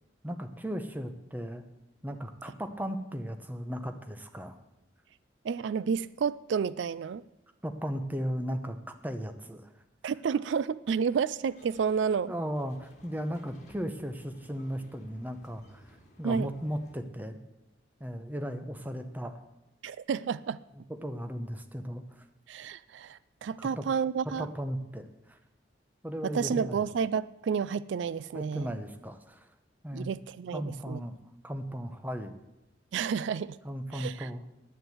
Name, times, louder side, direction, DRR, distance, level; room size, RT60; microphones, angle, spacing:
voice 1, 0.2-1.6 2.0-4.6 7.6-8.8 9.0-9.7 12.3-17.4 18.0-19.4 20.9-22.2 23.6-23.8 24.4-25.4 26.0-26.8 28.3-29.5 29.8-30.1 30.5-31.2 31.4-32.3 33.6-34.4, equal, 10° right, 7 dB, 0.9 m, -36 dB
voice 2, 5.4-7.2 10.0-12.3 16.2-16.5 19.8-20.6 22.5-24.5 26.2-28.7 29.9-31.0 32.9-33.6 33.9-34.3, right 6 dB, 80° right, 18 dB, 0.3 m, -30 dB
sound 1, 11.5-17.0, equal, 40° left, 2.2 m, -57 dB
10.0 x 9.5 x 7.9 m, 0.96 s
head